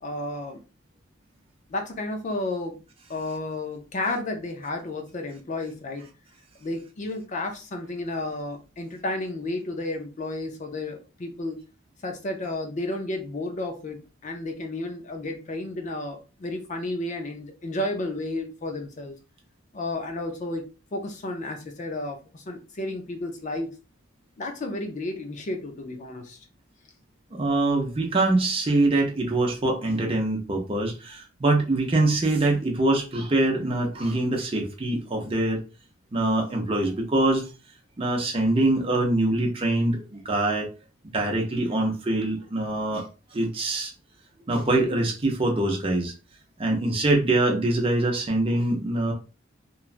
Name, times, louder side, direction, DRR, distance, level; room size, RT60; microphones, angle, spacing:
voice 1, 0.0-0.6 1.7-2.8 3.1-6.1 6.6-11.6 12.0-19.2 19.7-20.6 20.9-23.7 24.4-26.4, left 2 dB, 35° left, 0.4 m, -32 dB
voice 2, 27.3-35.6 36.1-37.4 38.0-40.7 41.1-43.1 43.3-43.9 44.5-46.1 46.6-49.1, right 2 dB, 25° right, 0.6 m, -24 dB
3.0 x 2.3 x 2.4 m
head